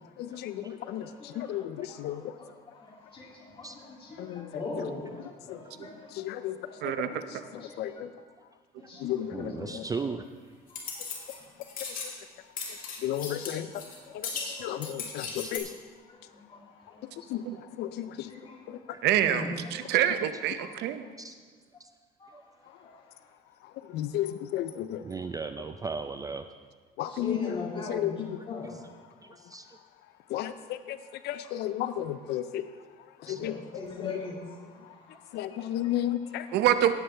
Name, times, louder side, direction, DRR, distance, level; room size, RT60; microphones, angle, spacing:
voice 1, 0.2-1.0 1.4-2.2 4.2-4.5 6.2-6.5 7.8-8.1 9.0-9.8 13.0-13.7 14.6-15.7 17.3-17.4 17.8-18.1 23.9-24.3 24.5-25.0 27.0-27.6 27.9-28.4 30.3-30.5 30.9-31.0 31.2-32.6 33.3-33.6 34.0-34.1 35.3-36.4, left 12 dB, 80° left, 12 dB, 0.4 m, -32 dB
voice 2, 0.8-6.0 6.6-6.8 7.1-8.0 8.8-9.7 10.0-10.1 10.7-11.0 11.4-11.5 14.0-14.9 16.1-17.1 17.4-17.5 18.3-18.7 19.2-20.0 20.6-20.7 22.2-22.3 22.8-22.9 27.0-28.1 28.5-28.8 33.3-35.2 35.8-36.0 36.5-36.6, left 3 dB, 30° left, -2 dB, 2.7 m, -41 dB
voice 3, 6.8-7.1 17.4-17.6 19.0-21.0 36.5-36.9, right 11 dB, 80° right, 10 dB, 0.7 m, -26 dB
voice 4, 9.3-10.3 15.4-15.7 18.9-19.0 21.2-21.4 21.8-21.9 22.3-22.4 25.0-26.5 28.7-28.8 29.2-29.7 33.3-33.4, right 4 dB, 20° right, 8 dB, 0.4 m, -37 dB
sound 1, 10.7-11.4 11.6-12.1 12.6-14.0 14.2-15.6, left 5 dB, 55° left, 2.5 m, -37 dB
17.0 x 7.9 x 3.3 m, 1.5 s
cardioid pair, 110°, 17 cm